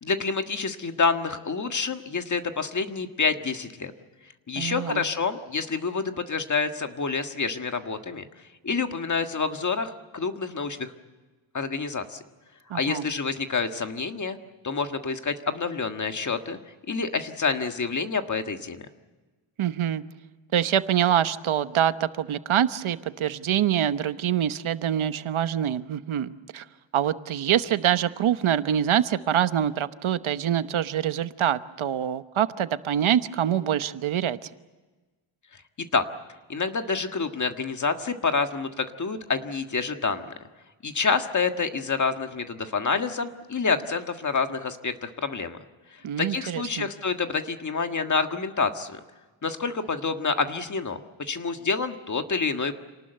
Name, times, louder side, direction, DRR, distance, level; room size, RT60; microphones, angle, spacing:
voice 1, 0.0-3.9 4.5-8.3 8.6-10.9 11.5-12.2 12.7-14.4 14.6-16.6 16.9-18.9 35.9-36.1 36.5-40.3 40.8-45.6 45.9-49.0 49.4-52.7, left 4 dB, 40° left, 6 dB, 1.7 m, -28 dB
voice 2, 4.6-5.0 12.7-13.1 19.6-20.0 20.5-26.6 26.9-34.5 46.0-46.9, right 10 dB, 85° right, 12 dB, 1.1 m, -25 dB
28.0 x 19.0 x 7.9 m, 1.3 s
wide cardioid pair, 155°, 47 cm